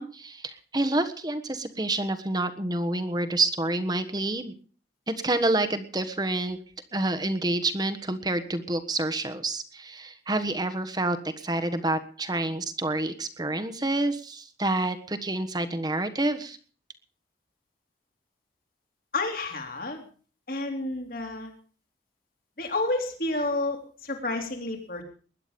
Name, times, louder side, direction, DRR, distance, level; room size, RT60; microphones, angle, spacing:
voice 1, 0.0-4.5 5.1-6.6 6.9-16.6, right 2 dB, 25° right, 9 dB, 1.4 m, -28 dB
voice 2, 19.1-20.0 20.5-21.5 22.6-25.0, left 2 dB, 55° left, 3 dB, 3.5 m, -30 dB
21.0 x 11.0 x 5.3 m, 0.42 s
head